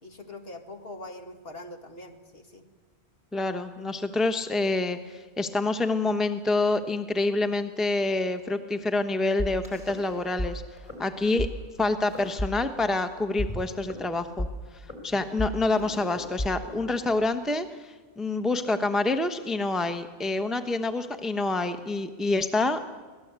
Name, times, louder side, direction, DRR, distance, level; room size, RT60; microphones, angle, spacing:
voice 1, 0.0-2.7, left 2 dB, 60° left, 5 dB, 2.3 m, -43 dB
voice 2, 3.3-10.6 11.0-11.5 11.8-14.5 15.0-22.8, left 2 dB, ahead, 8 dB, 1.0 m, -27 dB
sound 1, 9.4-10.5 10.8-11.0 11.4-11.5 12.0-13.0 13.4-17.4, left 1 dB, 25° left, 4.0 m, -34 dB
24.5 x 18.0 x 8.2 m, 1.4 s
omnidirectional pair, 1.1 m